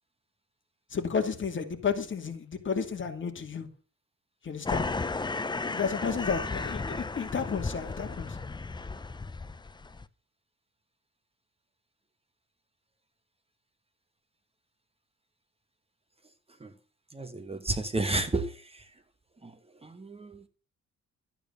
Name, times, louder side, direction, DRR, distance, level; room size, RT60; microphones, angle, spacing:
voice 1, 0.9-3.7 4.4-4.9 5.6-8.4, left 6 dB, 40° left, 2.5 m, -32 dB
sound 1, 4.6-10.1, left 3 dB, 15° left, 0.6 m, -34 dB
voice 2, 17.1-18.5 19.4-19.5 19.8-20.5, right 2 dB, 20° right, 1.2 m, -31 dB
13.0 x 8.9 x 6.6 m
cardioid pair, 130°, 30 cm